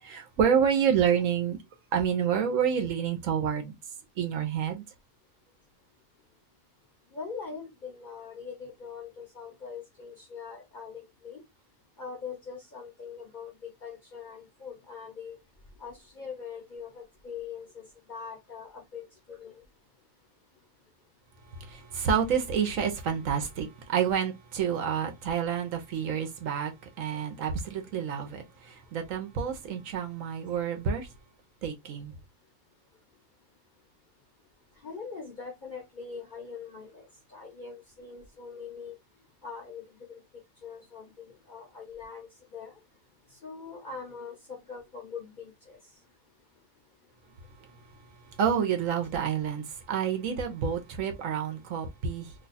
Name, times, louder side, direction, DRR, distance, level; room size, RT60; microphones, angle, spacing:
voice 1, 0.0-1.6 1.9-3.7 4.2-4.8 21.5-31.1 31.6-32.1 48.3-52.3, right 7 dB, 65° right, 1.0 m, -28 dB
voice 2, 7.1-11.4 12.0-13.5 13.8-15.4 15.8-17.8 18.1-19.6 34.8-37.0 37.3-38.9 39.4-39.8 40.1-40.2 40.6-42.7 43.4-45.8, left 5 dB, 45° left, 0.7 m, -42 dB
2.8 x 2.3 x 3.9 m
omnidirectional pair, 1.5 m